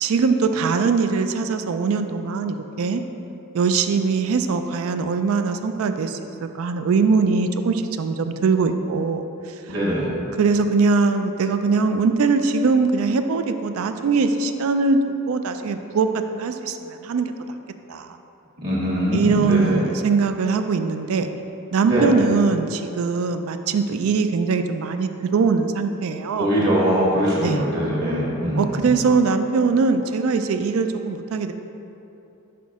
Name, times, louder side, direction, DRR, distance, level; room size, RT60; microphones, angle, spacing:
voice 1, 0.0-3.0 3.5-6.2 6.5-9.2 10.4-15.0 15.3-17.3 17.9-18.1 19.1-21.3 21.7-26.5 27.4-27.6 28.6-31.5, right 4 dB, 70° right, 8 dB, 0.3 m, -21 dB
voice 2, 9.7-10.1 18.6-19.8 21.9-22.1 26.4-28.9, equal, 50° right, -6 dB, 1.4 m, -22 dB
5.9 x 5.2 x 3.5 m, 2.9 s
head